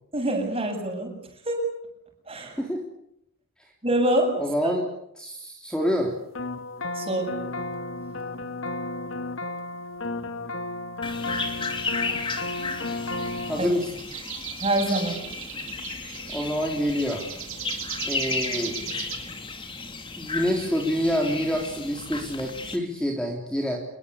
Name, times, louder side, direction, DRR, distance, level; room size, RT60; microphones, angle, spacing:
voice 1, 0.1-1.1 1.4-1.7 2.3-2.6 3.8-4.3 6.9-7.4 13.6-13.7 14.6-15.2, right 1 dB, 25° right, 3 dB, 7.9 m, -25 dB
voice 2, 4.4-4.8 5.2-6.2 13.5-13.9 16.3-17.2 18.0-18.8 20.2-23.8, equal, 5° left, 0 dB, 3.4 m, -27 dB
sound 1, 6.3-13.7, left 2 dB, 60° left, 1.8 m, -33 dB
sound 2, 11.0-22.8, left 4 dB, 20° left, 3.1 m, -34 dB
sound 3, 12.0-19.2, right 9 dB, 70° right, 6.5 m, -38 dB
28.0 x 22.5 x 8.6 m, 0.76 s
head